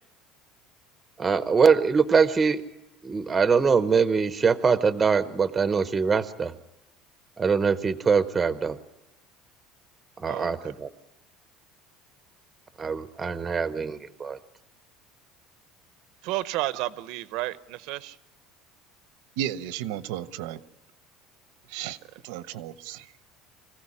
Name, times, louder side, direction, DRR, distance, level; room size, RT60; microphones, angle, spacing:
voice 1, 1.2-2.6 3.0-6.5 7.4-8.8 10.2-10.9 12.8-14.4, right 5 dB, 15° right, 0.8 m, -23 dB
voice 2, 10.3-10.7 16.2-18.2, right 16 dB, 60° right, 0.8 m, -31 dB
voice 3, 19.4-20.6 21.7-22.0 22.2-23.1, right 11 dB, 85° right, 1.1 m, -33 dB
25.0 x 16.0 x 9.8 m
cardioid pair, 175°, 0 cm